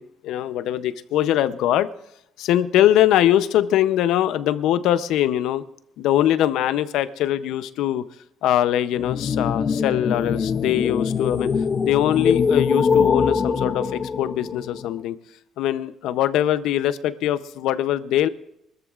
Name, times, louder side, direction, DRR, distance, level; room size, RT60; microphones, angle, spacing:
voice 1, 0.0-1.9 2.4-5.6 6.0-8.1 8.4-11.5 11.8-15.2 15.6-18.3, left 12 dB, 80° left, 13 dB, 0.6 m, -22 dB
sound 1, 9.0-14.9, left 5 dB, 30° left, 0.6 m, -23 dB
24.0 x 13.5 x 2.5 m, 0.78 s
cardioid pair, 150°, 0 cm